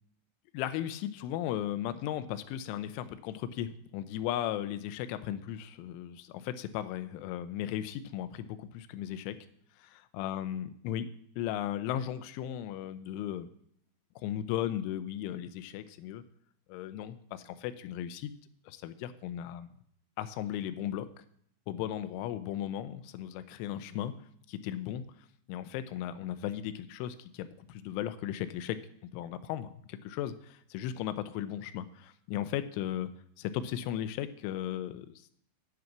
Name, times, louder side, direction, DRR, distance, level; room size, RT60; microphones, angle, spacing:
voice 1, 0.5-9.4 9.8-9.9 10.2-11.1 11.4-13.5 14.2-16.2 16.7-18.3 18.7-19.7 20.2-21.2 21.7-24.1 24.5-25.0 25.5-28.8 29.1-33.1 33.4-35.3, left 11 dB, 85° left, 11 dB, 2.9 m, -36 dB
8.1 x 7.8 x 5.9 m, 0.68 s
omnidirectional pair, 5.8 m